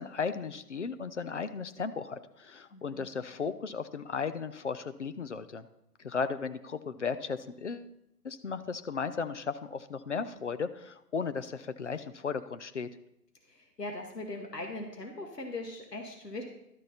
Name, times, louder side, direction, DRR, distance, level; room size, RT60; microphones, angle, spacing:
voice 1, 0.0-5.7 6.0-7.9 8.2-12.9, left 5 dB, 45° left, 12 dB, 0.6 m, -35 dB
voice 2, 2.7-3.1 13.5-16.4, left 2 dB, 75° left, 2 dB, 2.0 m, -40 dB
12.5 x 6.2 x 4.3 m, 0.80 s
figure-of-eight pair, 140°, 48 cm